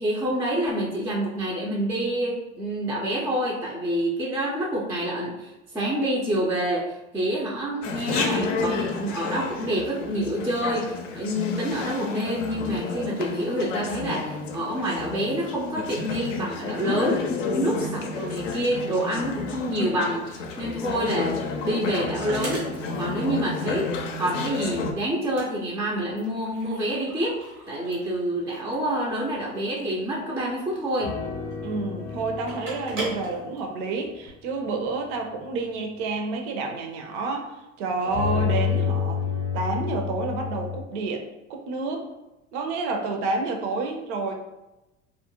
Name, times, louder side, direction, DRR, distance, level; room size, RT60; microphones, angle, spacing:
voice 1, 0.0-22.6 23.0-27.4 27.7-31.1, right 1 dB, 10° right, -4 dB, 0.3 m, -27 dB
Chatter, 7.8-24.9, left 4 dB, 75° left, 0.5 m, -31 dB
sound 1, 21.0-34.3, right 1 dB, 80° right, 1.0 m, -41 dB
sound 2, 31.0-33.7 34.0-34.2 38.0-40.8, left 7 dB, 30° left, 0.6 m, -29 dB
voice 2, 31.6-39.2 39.5-42.1 42.5-44.3, right 3 dB, 60° right, 3 dB, 0.6 m, -29 dB
2.3 x 2.1 x 2.8 m, 0.99 s
figure-of-eight pair, 75°, 38 cm